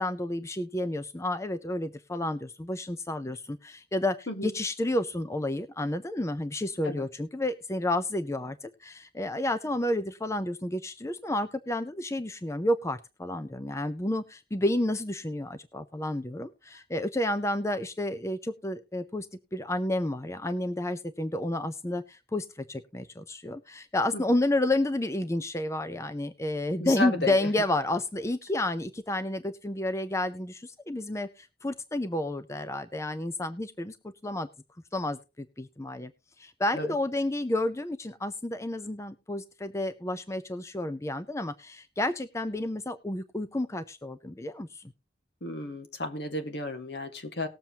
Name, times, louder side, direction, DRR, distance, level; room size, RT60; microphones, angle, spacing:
voice 1, 0.0-19.3 19.5-34.5 34.9-36.1 36.4-44.9, left 1 dB, 15° left, 11 dB, 0.5 m, -30 dB
voice 2, 26.8-27.5 36.7-36.9 45.4-47.5, left 2 dB, 65° left, 7 dB, 1.6 m, -33 dB
19.5 x 7.3 x 2.9 m, 0.28 s
head